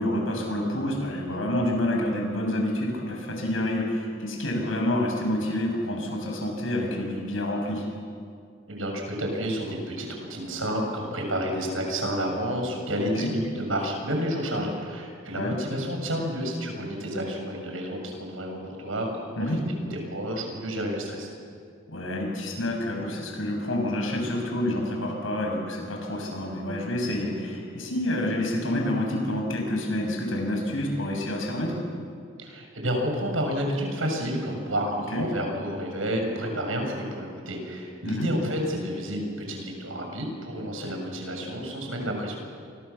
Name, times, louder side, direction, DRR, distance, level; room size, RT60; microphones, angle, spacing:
voice 1, 0.0-7.9 13.1-13.3 15.4-15.5 19.4-19.6 21.9-31.8 35.1-35.3 38.0-38.3, left 1 dB, 80° left, 1 dB, 7.6 m, -28 dB
voice 2, 8.7-19.5 19.9-21.3 32.4-42.4, equal, 85° right, 2 dB, 7.1 m, -30 dB
29.5 x 25.5 x 7.2 m, 2.3 s
head